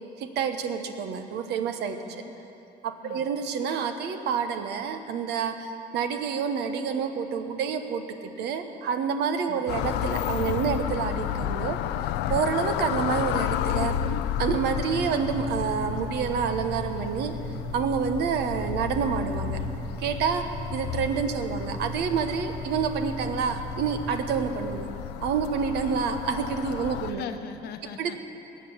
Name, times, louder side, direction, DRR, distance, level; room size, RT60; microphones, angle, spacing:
voice 1, 0.2-2.0 2.8-11.8 12.3-13.9 14.4-17.3 17.7-19.6 20.0-24.9 25.2-27.2 28.0-28.2, right 6 dB, 80° right, 7 dB, 1.1 m, -28 dB
voice 2, 1.9-2.3 3.0-3.3 9.5-9.6 27.1-28.2, left 9 dB, 70° left, 8 dB, 1.0 m, -40 dB
sound 1, 9.7-27.1, left 11 dB, 90° left, 0.5 m, -32 dB
sound 2, 14.3-24.9, right 4 dB, 20° right, 0.7 m, -39 dB
19.5 x 7.7 x 7.0 m, 2.9 s
cardioid pair, 110°, 17 cm